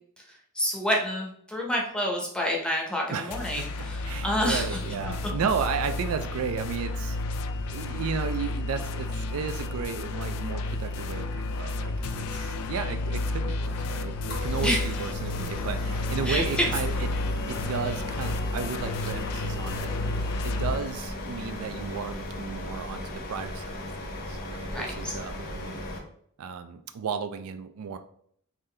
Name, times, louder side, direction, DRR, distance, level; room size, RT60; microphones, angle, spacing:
voice 1, 0.5-4.8 14.6-14.9 16.3-16.7 24.7-25.1, equal, 5° left, -1 dB, 0.7 m, -28 dB
voice 2, 3.1-3.7 4.0-7.2 7.7-17.1 17.5-19.9 20.4-23.8 24.3-25.8 26.4-28.0, right 6 dB, 80° right, 9 dB, 0.4 m, -34 dB
sound 1, 3.3-20.8, left 2 dB, 90° left, 0.4 m, -31 dB
sound 2, 14.3-26.0, left 1 dB, 45° left, 0.7 m, -37 dB
3.7 x 2.7 x 3.2 m, 0.63 s
head